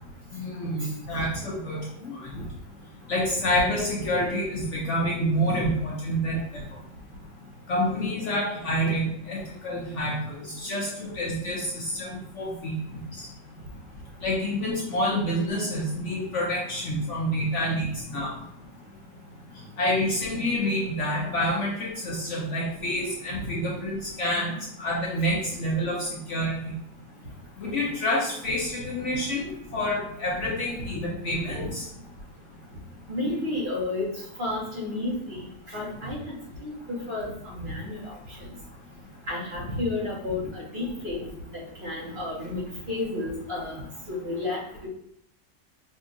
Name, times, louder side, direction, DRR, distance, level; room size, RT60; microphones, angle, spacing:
voice 1, 0.3-2.3 3.1-6.6 7.7-12.8 13.1-13.3 14.2-18.3 19.8-26.8 27.6-31.9, equal, 60° left, -4 dB, 0.9 m, -28 dB
voice 2, 33.1-34.1 34.4-36.7 37.1-38.1 38.4-38.5 39.3-41.2 41.8-43.8 44.1-44.9, left 2 dB, 35° right, -7 dB, 1.3 m, -31 dB
5.2 x 2.7 x 2.4 m, 0.74 s
omnidirectional pair, 1.7 m